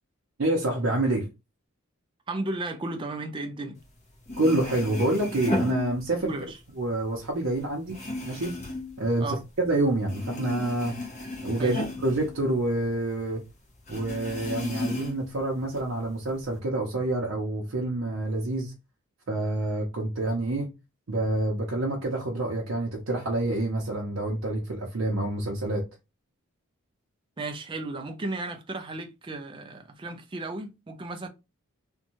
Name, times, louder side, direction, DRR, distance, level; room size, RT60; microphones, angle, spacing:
voice 1, 0.4-1.3 4.4-6.3 6.8-8.0 8.2-8.5 9.0-11.0 11.4-13.4 13.9-18.7 19.3-20.7 21.1-25.9, right 2 dB, 65° right, 0.6 m, -27 dB
voice 2, 2.3-3.8 6.2-6.6 9.2-9.4 11.6-11.8 27.4-31.3, right 2 dB, 20° right, 0.3 m, -34 dB
sound 1, 4.0-6.5 6.8-9.7 10.0-13.0 13.3-13.4 13.9-15.4 15.7-16.5, left 2 dB, 30° left, 0.7 m, -34 dB
2.6 x 2.2 x 2.8 m
head